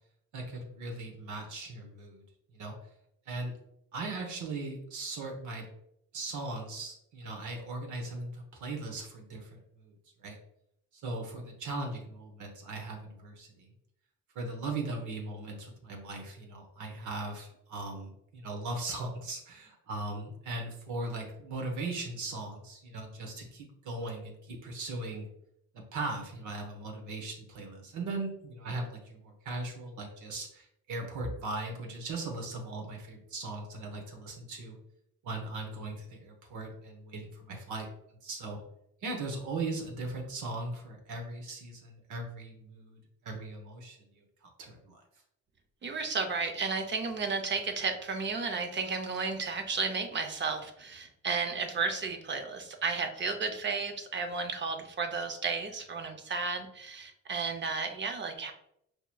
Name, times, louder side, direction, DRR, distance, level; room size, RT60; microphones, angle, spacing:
voice 1, 0.3-2.2 2.5-2.7 3.3-3.5 3.9-5.7 6.1-9.9 10.2-10.4 10.9-13.7 14.3-25.3 25.7-34.8 35.2-37.9 38.2-38.6 39.0-45.0, right 2 dB, 75° right, 2 dB, 1.0 m, -39 dB
voice 2, 45.8-58.5, right 4 dB, 40° right, 6 dB, 0.6 m, -33 dB
4.7 x 2.8 x 2.2 m, 0.75 s
cardioid pair, 90°, 30 cm